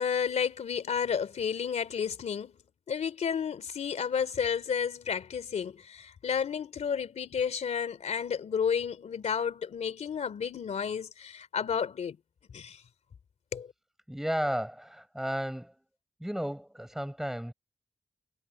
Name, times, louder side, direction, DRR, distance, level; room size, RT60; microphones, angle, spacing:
voice 1, 0.0-2.5 2.9-12.2 12.5-12.8 13.5-13.7, left 7 dB, 75° left, 3.0 m, -31 dB
voice 2, 14.1-15.7 16.2-17.5, equal, 5° right, 5.7 m, -33 dB
wide cardioid pair, 160°, 12 cm